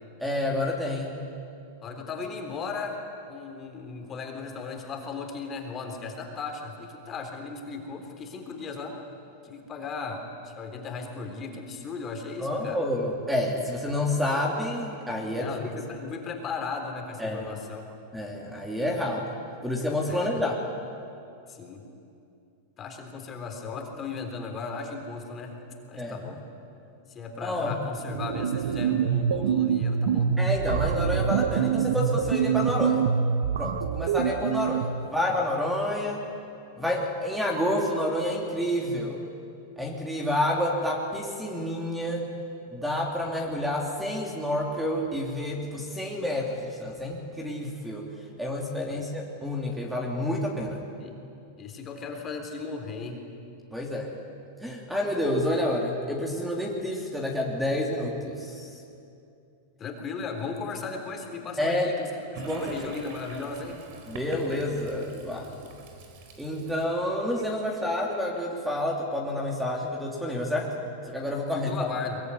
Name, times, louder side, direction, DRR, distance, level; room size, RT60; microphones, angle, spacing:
voice 1, 0.2-1.2 12.4-15.5 17.2-17.5 18.1-19.3 19.6-20.6 26.0-26.3 27.4-27.7 30.4-33.1 33.6-36.2 36.8-39.2 39.8-42.2 42.7-48.1 48.4-50.8 53.7-54.1 54.6-58.8 61.6-61.9 62.4-62.9 64.1-65.5 66.4-70.7 71.0-71.9, left 1 dB, 5° right, 0 dB, 3.1 m, -29 dB
voice 2, 1.8-3.0 3.3-9.0 9.4-12.8 15.3-17.9 20.1-20.2 21.5-21.8 22.8-25.6 25.9-26.4 27.1-30.3 48.9-49.1 51.0-51.2 51.6-53.2 59.8-62.1 62.3-63.8 71.5-72.2, left 4 dB, 25° left, 3 dB, 3.8 m, -36 dB
sound 1, 28.0-35.1, right 7 dB, 85° right, 1.0 m, -25 dB
Toilet flush, 62.3-68.9, right 3 dB, 60° right, 4.7 m, -45 dB
22.5 x 22.5 x 9.9 m, 2.6 s
supercardioid pair, 135°, 0 cm